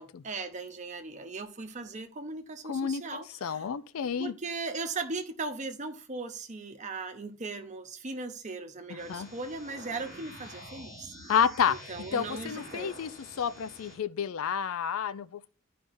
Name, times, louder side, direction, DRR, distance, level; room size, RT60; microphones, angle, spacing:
voice 1, 0.0-3.7 4.2-11.3 11.7-12.9, right 3 dB, 35° right, 0.8 m, -38 dB
voice 2, 2.7-3.0 3.4-4.3 9.1-9.3 11.3-11.8 12.1-13.1 13.4-15.5, left 7 dB, 80° left, 0.4 m, -29 dB
sound 1, 9.0-13.9, equal, 40° left, 3.2 m, -47 dB
13.5 x 5.1 x 2.6 m
head